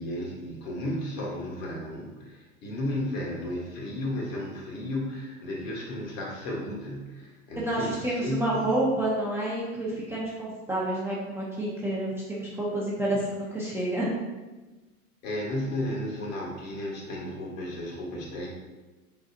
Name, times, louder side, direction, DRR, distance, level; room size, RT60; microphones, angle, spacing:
voice 1, 0.0-8.8 15.2-18.5, left 1 dB, 60° left, -2 dB, 1.4 m, -34 dB
voice 2, 7.6-14.1, right 1 dB, 5° right, -7 dB, 0.6 m, -29 dB
3.9 x 3.9 x 2.7 m, 1.2 s
hypercardioid pair, 100°, 45 cm